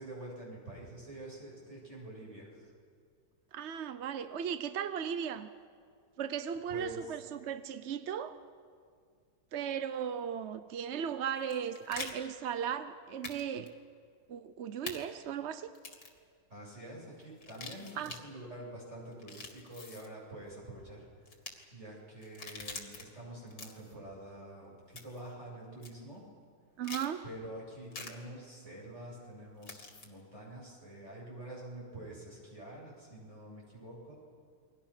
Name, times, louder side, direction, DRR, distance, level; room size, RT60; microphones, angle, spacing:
voice 1, 0.0-2.7 6.7-7.2 16.5-21.1 21.7-26.2 27.2-34.1, right 1 dB, 40° right, -4 dB, 8.3 m, -47 dB
voice 2, 3.5-5.5 6.2-8.4 9.5-13.7 14.3-15.7 18.0-18.1 26.8-27.2, right 8 dB, 55° right, 11 dB, 0.8 m, -36 dB
sound 1, 11.4-12.1 13.2-13.4 13.7-13.8 14.9-15.0 15.7-16.2 17.4-18.2 19.1-20.1 21.3-21.5 22.2-23.0 23.5-23.9 25.0-25.3 25.8-25.9 26.8-27.1 27.9-28.1 29.6-30.1, left 3 dB, 55° left, 2.8 m, -44 dB
29.5 x 23.0 x 6.0 m, 2.1 s
omnidirectional pair, 1.9 m